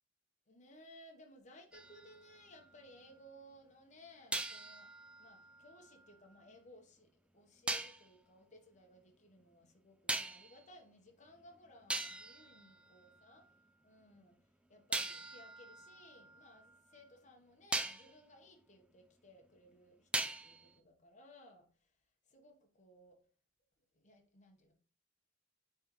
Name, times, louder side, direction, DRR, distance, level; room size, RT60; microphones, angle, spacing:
voice 1, 0.5-13.5 13.8-14.4 14.7-21.9 22.3-23.2 23.9-24.7, left 1 dB, 40° left, 1.0 m, -60 dB
sound 1, 1.7-3.1 4.3-6.4 7.7-8.1 10.1-10.6 11.4-11.5 11.9-13.5 14.9-17.1 17.7-18.1 20.1-20.7, right 2 dB, 5° right, 0.3 m, -41 dB
9.6 x 3.4 x 3.0 m
head